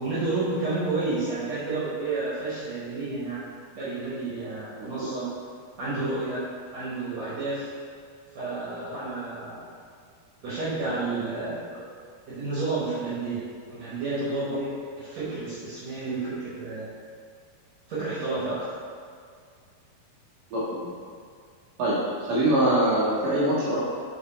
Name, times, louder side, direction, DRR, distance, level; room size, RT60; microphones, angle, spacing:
voice 1, 0.0-3.4 3.8-5.3 5.8-6.4 6.7-7.7 8.3-9.6 10.4-11.8 12.3-16.9 17.9-18.7, right 3 dB, 60° right, -9 dB, 1.9 m, -30 dB
voice 2, 22.3-23.8, right 1 dB, 80° right, -8 dB, 1.5 m, -23 dB
5.4 x 5.0 x 4.2 m, 2.1 s
omnidirectional pair, 4.5 m